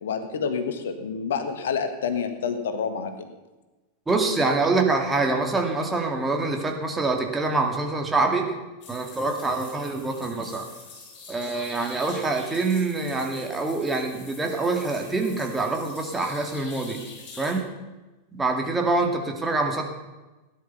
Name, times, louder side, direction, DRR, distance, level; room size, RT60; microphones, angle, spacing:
voice 1, 0.0-3.3, left 6 dB, 60° left, 8 dB, 1.5 m, -28 dB
voice 2, 4.1-8.5 8.9-10.7 11.3-17.0 17.4-17.6 18.3-19.8, right 3 dB, 10° right, 2 dB, 2.2 m, -25 dB
sound 1, 8.8-17.6, left 4 dB, 35° left, 6.7 m, -45 dB
17.0 x 10.5 x 5.7 m, 1.1 s
figure-of-eight pair, 90°, 0 cm